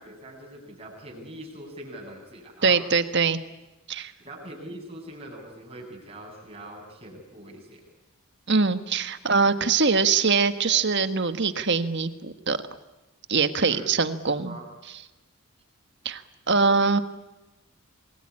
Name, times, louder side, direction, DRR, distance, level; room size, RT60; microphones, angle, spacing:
voice 1, 0.0-2.8 4.2-7.8 13.6-13.9 14.2-14.7, right 1 dB, 25° right, 0 dB, 7.9 m, -42 dB
voice 2, 2.6-3.4 3.9-4.1 8.5-12.6 13.3-14.6 16.0-16.2 16.5-17.0, right 4 dB, 50° right, 10 dB, 1.5 m, -23 dB
27.5 x 21.5 x 9.8 m, 1.0 s
head